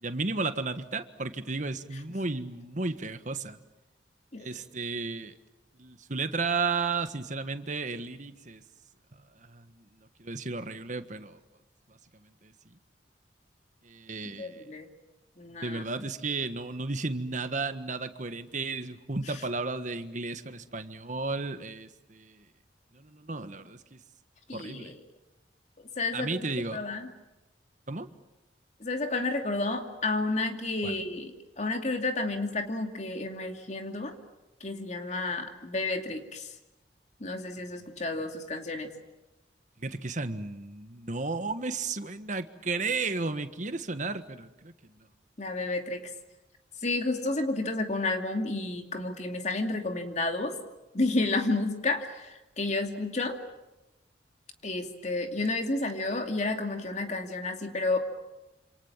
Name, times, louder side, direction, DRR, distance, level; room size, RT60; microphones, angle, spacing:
voice 1, 0.0-3.6 4.4-5.3 5.8-8.6 9.1-9.6 10.2-11.4 12.4-12.5 13.8-14.6 15.6-22.4 22.9-24.0 24.5-24.9 26.1-26.8 27.9-28.1 30.8-31.0 39.8-44.7, right 3 dB, 45° right, 10 dB, 1.5 m, -33 dB
voice 2, 14.2-14.9 15.4-15.8 24.5-25.0 25.8-26.5 26.7-27.1 28.8-31.3 31.6-34.2 34.6-36.5 37.2-38.9 45.4-46.1 46.8-50.5 50.9-53.4 54.6-58.0, left 2 dB, 40° left, 5 dB, 2.6 m, -31 dB
28.0 x 27.0 x 7.4 m, 1.0 s
head